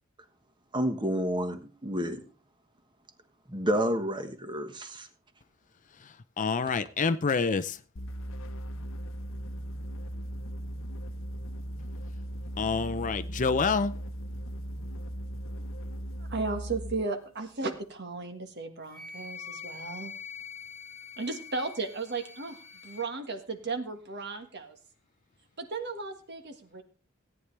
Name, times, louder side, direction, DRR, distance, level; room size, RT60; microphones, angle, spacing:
voice 1, 0.7-2.2 3.5-5.1, equal, 20° right, 1.3 m, -30 dB
voice 2, 6.4-7.8 12.6-13.9, left 4 dB, 35° left, 0.5 m, -27 dB
sound 1, 8.0-17.1, right 1 dB, 65° left, 0.9 m, -38 dB
voice 3, 16.3-20.1 21.2-24.7 25.6-26.8, right 3 dB, 50° right, 1.7 m, -35 dB
Wind instrument woodwind instrument, 18.9-23.1, left 5 dB, 80° right, 3.6 m, -44 dB
17.0 x 9.7 x 3.3 m
head